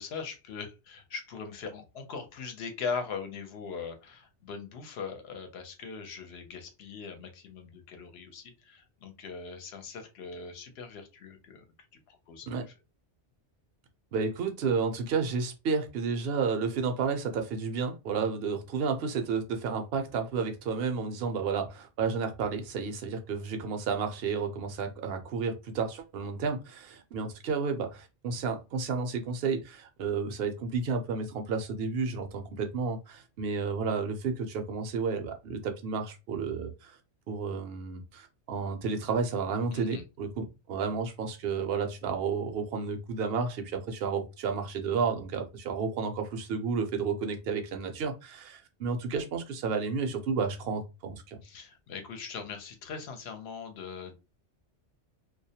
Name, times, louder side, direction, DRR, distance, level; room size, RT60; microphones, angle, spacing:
voice 1, 0.0-11.6 12.1-12.6 39.7-40.0 51.4-54.1, left 5 dB, 65° left, 0.8 m, -40 dB
voice 2, 14.1-37.0 37.3-51.4, right 5 dB, 65° right, 0.7 m, -31 dB
2.3 x 2.0 x 2.7 m
omnidirectional pair, 1.2 m